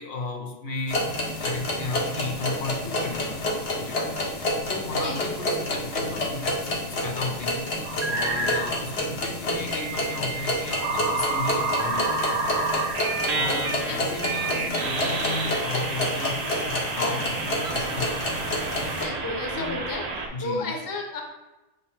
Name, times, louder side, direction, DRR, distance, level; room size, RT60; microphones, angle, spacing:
voice 1, 0.0-4.1 4.7-7.7 8.1-12.4 13.3-18.5 19.5-19.8 20.3-20.7, left 2 dB, 60° left, 2 dB, 0.8 m, -34 dB
sound 1, 0.9-19.0, left 1 dB, 80° left, 1.1 m, -29 dB
voice 2, 5.0-5.4 13.7-14.1 14.5-14.8 18.9-21.2, left 2 dB, 25° left, 2 dB, 0.5 m, -33 dB
sound 2, 7.8-8.8 9.7-20.3, right 3 dB, 50° right, 0.5 m, -30 dB
5.1 x 2.1 x 4.2 m, 1.0 s
omnidirectional pair, 1.1 m